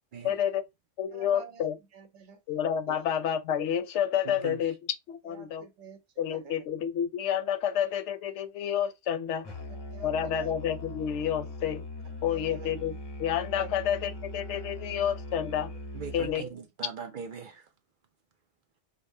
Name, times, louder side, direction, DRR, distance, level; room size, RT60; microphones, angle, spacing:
voice 1, 0.2-0.6 1.0-1.8 2.5-5.6 6.2-9.5 10.0-11.8 12.2-15.7 16.1-16.4, left 9 dB, 80° left, 0.9 m, -29 dB
voice 2, 1.1-2.4 2.9-3.0 5.2-6.0 6.3-6.6 9.7-10.5 12.2-12.7 13.6-13.7 14.9-15.0 16.3-16.6, right 5 dB, 80° right, 1.1 m, -48 dB
voice 3, 4.2-4.8 15.9-17.7, right 6 dB, 60° right, 0.6 m, -41 dB
Musical instrument, 9.4-16.5, left 1 dB, 30° left, 0.5 m, -40 dB
5.1 x 2.1 x 2.6 m
omnidirectional pair, 1.2 m